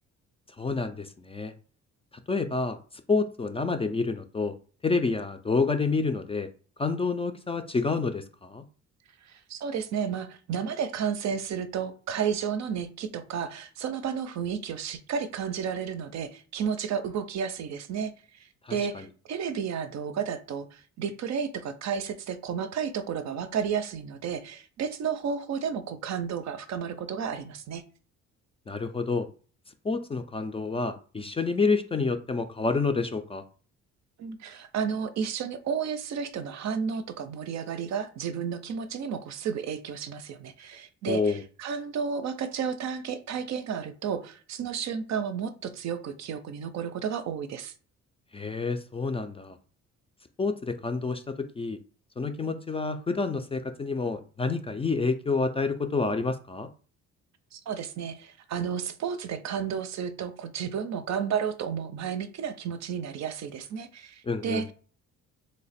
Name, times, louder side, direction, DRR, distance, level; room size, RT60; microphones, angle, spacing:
voice 1, 0.6-1.5 2.3-2.8 3.1-4.5 4.8-6.5 6.8-8.6 18.6-19.1 28.7-29.3 29.8-33.4 41.1-41.4 48.3-49.6 50.4-51.8 52.2-56.7 64.2-64.6, left 4 dB, 20° left, 7 dB, 0.3 m, -28 dB
voice 2, 9.3-18.1 18.7-27.8 34.2-47.7 57.5-64.7, right 7 dB, 65° right, 10 dB, 0.5 m, -32 dB
3.1 x 2.1 x 4.1 m, 0.39 s
cardioid pair, 90°, 30 cm